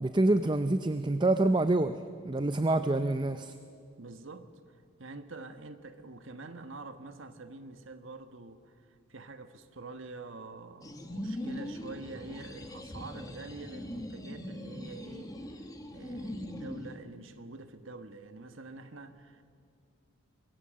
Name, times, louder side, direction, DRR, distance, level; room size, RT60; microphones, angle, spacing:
voice 1, 0.0-2.0 2.2-3.5, right 2 dB, 20° right, 10 dB, 0.5 m, -26 dB
voice 2, 4.0-15.3 15.9-19.4, right 3 dB, 70° right, 9 dB, 1.4 m, -46 dB
sound 1, 10.8-16.9, left 1 dB, 15° left, 1.5 m, -41 dB
25.0 x 22.0 x 7.6 m, 2.3 s
head